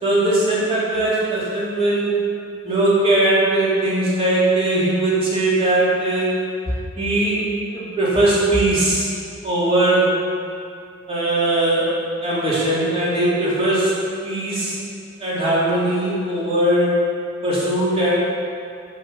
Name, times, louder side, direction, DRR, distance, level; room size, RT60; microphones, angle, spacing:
voice 1, 0.0-2.1 2.6-6.3 7.0-7.4 7.7-9.1 9.4-10.2 11.1-13.9 14.2-14.8 15.2-17.0 17.4-18.1, right 1 dB, 30° right, -8 dB, 3.0 m, -19 dB
8.8 x 8.4 x 7.0 m, 2.4 s
head